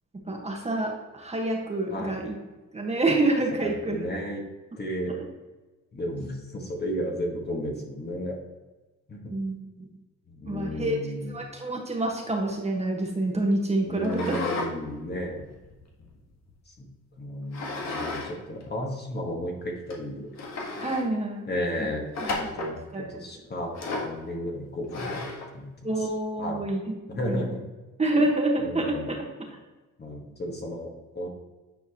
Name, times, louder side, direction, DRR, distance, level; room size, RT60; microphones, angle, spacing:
voice 1, 0.3-2.3 2.7-4.0 9.3-9.9 10.5-11.0 11.3-14.4 20.8-21.5 22.6-23.2 25.8-26.8 27.1-27.5 28.0-29.3, right 2 dB, 20° right, 0 dB, 1.4 m, -27 dB
voice 2, 3.6-4.4 4.8-5.1 5.9-8.4 9.1-9.3 10.3-11.4 13.8-15.5 16.8-16.9 17.2-20.3 21.5-22.8 23.1-25.2 25.5-25.9 26.4-26.6 27.1-27.7 28.1-28.3 28.6-29.1 30.0-31.3, equal, 35° left, 0 dB, 1.7 m, -33 dB
sound 1, 14.0-14.7 15.1-16.5 17.5-18.3 18.6-18.7 19.4-19.5 19.9-20.0 20.4-21.1 22.1-22.8 23.7-24.2 24.9-25.5, left 3 dB, 60° left, 1.7 m, -33 dB
9.4 x 4.6 x 3.0 m, 1.2 s
cardioid pair, 90°, 30 cm